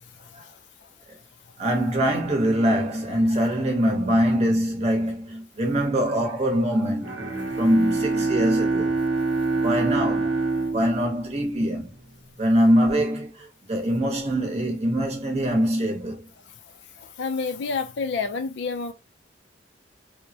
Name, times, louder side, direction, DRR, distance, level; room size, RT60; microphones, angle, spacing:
voice 1, 1.6-7.3 7.6-9.0 9.5-10.4 10.7-11.9 12.4-16.3, equal, 35° right, 0.8 m, -23 dB
Bowed string instrument, 7.0-12.0, right 3 dB, 75° right, 0.8 m, -26 dB
voice 2, 17.0-18.9, left 4 dB, 65° left, 0.4 m, -29 dB
3.2 x 2.1 x 2.7 m
head